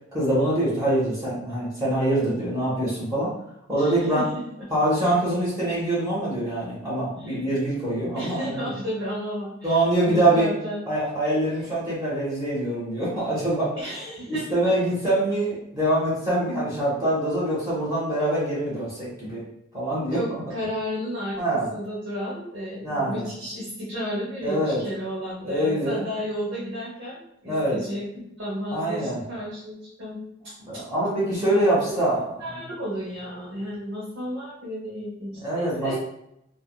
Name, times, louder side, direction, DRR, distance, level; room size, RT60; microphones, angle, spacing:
voice 1, 0.1-3.3 3.7-4.2 4.7-8.7 9.6-10.5 10.9-13.7 14.3-19.4 19.7-20.4 21.4-21.6 22.8-23.3 24.4-24.8 25.4-26.1 27.4-27.8 28.7-29.2 30.6-32.2 35.4-36.0, right 1 dB, 20° right, -8 dB, 0.9 m, -24 dB
voice 2, 3.8-4.3 4.6-4.7 7.2-7.4 8.1-10.8 13.8-14.7 20.1-30.8 32.0-32.1 32.4-36.0, equal, 75° right, -7 dB, 0.8 m, -33 dB
3.4 x 2.1 x 2.2 m, 0.79 s
head